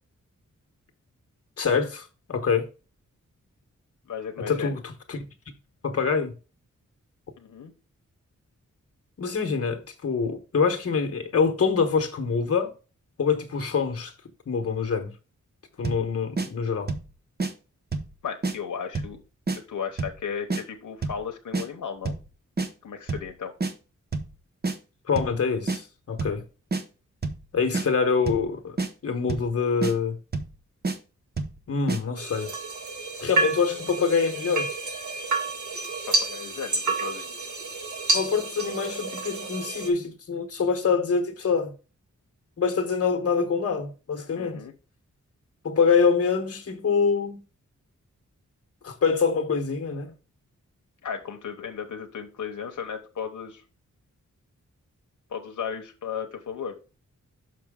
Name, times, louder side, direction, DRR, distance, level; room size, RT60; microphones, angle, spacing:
voice 1, 1.6-2.7 4.5-4.8 5.1-5.2 5.8-6.3 9.2-12.7 13.2-14.1 14.5-15.1 15.8-16.9 25.1-26.4 27.5-28.8 29.0-30.2 31.7-32.5 33.2-34.7 38.1-41.7 42.6-44.6 45.6-47.4 48.8-50.1, left 5 dB, 50° left, 1.1 m, -25 dB
voice 2, 4.1-4.8 7.4-7.7 18.2-19.2 19.5-22.1 22.8-23.5 36.1-37.3 44.4-44.7 51.0-53.6 55.3-56.8, left 7 dB, 80° left, 0.9 m, -35 dB
sound 1, 15.8-16.1 16.4-16.5 16.9-17.1 17.4-17.5 17.9-18.1 18.4-18.6 19.0-19.2 19.5-19.6 20.0-20.2 20.5-20.6 21.0-21.2 21.5-21.7 22.1-22.3 22.6-22.7 23.1-23.3 23.6-23.7 24.1-24.3 24.6-24.8 25.2-25.4 25.7-25.8 26.2-26.4 26.7-26.8 27.2-27.5 27.7-27.9 28.3-28.5 28.8-28.9 29.3-29.5 29.8-29.9 30.3-30.6 30.8-31.0 31.4-31.6 31.9-32.0, right 3 dB, 30° right, 0.8 m, -28 dB
sound 2, 32.2-39.9, right 3 dB, 70° right, 1.8 m, -29 dB
6.1 x 5.9 x 3.6 m
wide cardioid pair, 165°, 30 cm